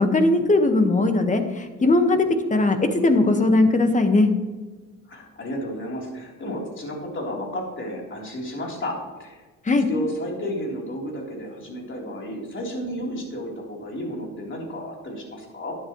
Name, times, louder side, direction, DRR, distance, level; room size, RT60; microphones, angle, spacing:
voice 1, 0.0-4.3 9.6-9.9, left 2 dB, 25° left, 6 dB, 1.4 m, -19 dB
voice 2, 5.1-9.4 9.9-15.8, equal, 40° left, -2 dB, 3.7 m, -32 dB
11.5 x 10.0 x 3.2 m, 1.2 s
cardioid pair, 90°, 30 cm